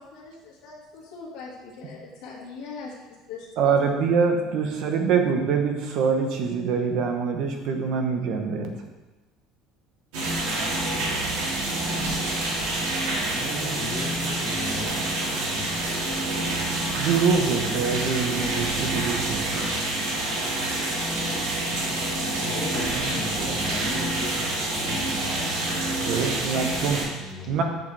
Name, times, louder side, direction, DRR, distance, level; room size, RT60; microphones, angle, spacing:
voice 1, 0.0-2.9 3.3-3.5 3.8-3.9, left 4 dB, 75° left, -8 dB, 1.7 m, -41 dB
voice 2, 3.6-8.7 10.5-10.9 16.9-19.7 26.1-27.1 27.5-27.6, right 5 dB, 50° right, 4 dB, 0.9 m, -25 dB
sound 1, 10.1-27.0, right 2 dB, 75° right, 2.0 m, -27 dB
voice 3, 11.8-12.1 12.8-16.0 22.4-26.4 27.1-27.6, left 1 dB, 15° left, -3 dB, 1.3 m, -37 dB
7.4 x 6.5 x 3.3 m, 1.1 s
cardioid pair, 175°, 0 cm